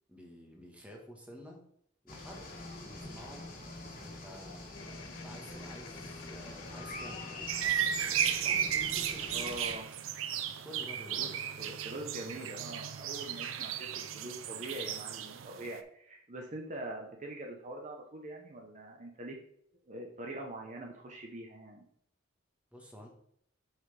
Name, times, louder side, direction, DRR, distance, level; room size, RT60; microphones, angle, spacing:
voice 1, 0.1-1.6 2.0-2.5 2.8-3.4 4.0-4.6 5.2-7.8 8.4-9.5 10.6-11.4 22.7-23.1, equal, 5° right, 0 dB, 1.3 m, -50 dB
sound 1, 2.1-9.7, left 2 dB, 45° left, 1.8 m, -45 dB
sound 2, 4.7-10.2, left 5 dB, 85° left, 0.8 m, -55 dB
sound 3, 7.5-15.8, right 9 dB, 90° right, 0.5 m, -34 dB
voice 2, 9.3-9.9 11.2-11.3 11.6-13.9 14.1-19.4 19.9-21.8, right 1 dB, 35° right, 1 dB, 0.8 m, -43 dB
7.5 x 5.7 x 3.3 m, 0.67 s
head